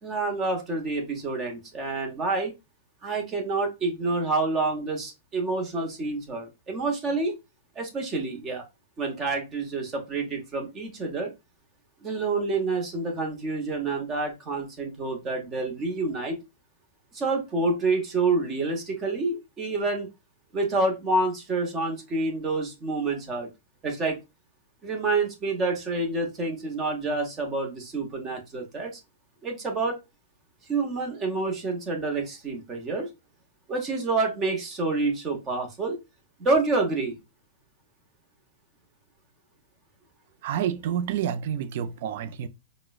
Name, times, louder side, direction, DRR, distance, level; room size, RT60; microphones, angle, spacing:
voice 1, 0.0-2.5 3.0-7.3 7.8-8.6 9.0-11.3 12.0-16.4 17.1-20.1 20.5-23.5 23.8-24.2 24.8-28.9 29.4-30.0 30.7-33.1 33.7-36.0 36.4-37.2, right 3 dB, 15° right, 0.7 m, -28 dB
voice 2, 40.4-42.5, right 9 dB, 40° right, 0.3 m, -29 dB
4.8 x 2.0 x 2.2 m
supercardioid pair, 175°, 0 cm